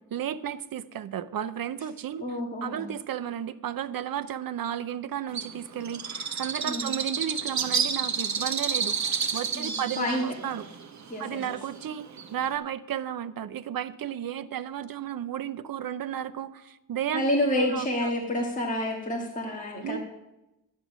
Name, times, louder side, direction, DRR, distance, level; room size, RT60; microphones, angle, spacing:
voice 1, 0.1-2.2 2.6-9.1 9.3-10.7 11.2-17.2 17.6-18.1 19.8-20.0, right 10 dB, 70° right, 13 dB, 0.7 m, -33 dB
voice 2, 2.2-2.9 6.6-6.9 9.5-10.2 11.1-11.4 17.1-20.0, left 1 dB, 20° left, -1 dB, 1.6 m, -29 dB
Bird, 5.3-12.6, right 6 dB, 50° right, 1.1 m, -31 dB
11.5 x 9.3 x 6.2 m, 0.93 s
wide cardioid pair, 170°, 36 cm